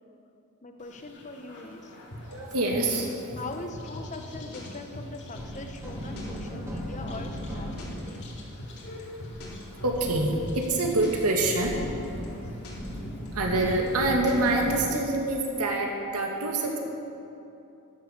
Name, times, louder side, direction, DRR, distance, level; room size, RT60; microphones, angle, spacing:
voice 1, 0.6-1.9 3.3-8.2, left 2 dB, 35° left, 5 dB, 1.0 m, -41 dB
sound 1, 0.8-14.5, left 2 dB, 55° left, 2.5 m, -49 dB
sound 2, 2.1-14.9, left 1 dB, 75° left, 3.6 m, -40 dB
voice 2, 2.3-3.4 9.4-11.8 13.3-16.8, right 2 dB, 90° right, 0 dB, 2.2 m, -26 dB
sound 3, 5.4-14.8, equal, 15° right, 2.2 m, -38 dB
13.5 x 11.0 x 6.7 m, 2.8 s
head